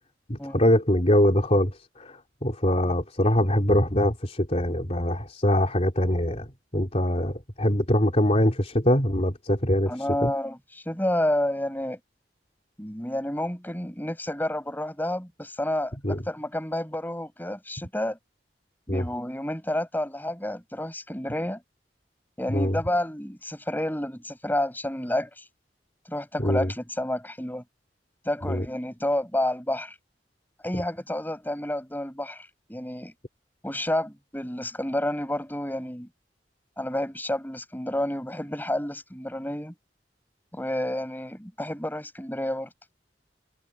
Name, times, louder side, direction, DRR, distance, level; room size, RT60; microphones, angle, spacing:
voice 1, 0.3-6.5 6.7-9.9 10.2-10.3 16.0-16.2 18.9-19.1 22.5-22.8 26.4-26.7 28.5-28.6, left 1 dB, 40° left, 3.5 m, -23 dB
voice 2, 9.9-12.0 12.8-16.0 16.3-18.2 18.9-21.6 22.4-25.4 26.1-27.6 28.3-30.0 30.6-33.1 33.6-36.1 36.8-39.7 40.5-42.7, left 1 dB, 10° left, 7.4 m, -30 dB
head